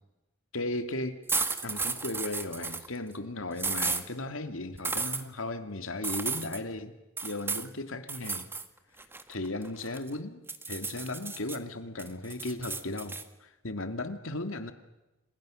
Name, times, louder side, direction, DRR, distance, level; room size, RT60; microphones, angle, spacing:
voice 1, 0.5-1.2 1.6-6.9 7.2-8.5 9.3-14.7, left 2 dB, 75° left, 8 dB, 2.6 m, -36 dB
sound 1, 1.3-2.9 3.6-4.0 4.8-5.2 6.0-6.6 7.2-7.7 8.1-8.7 9.0-10.1 10.5-11.6 12.0-13.2, right 4 dB, 10° right, 1.7 m, -33 dB
30.0 x 27.5 x 6.5 m, 1.0 s
head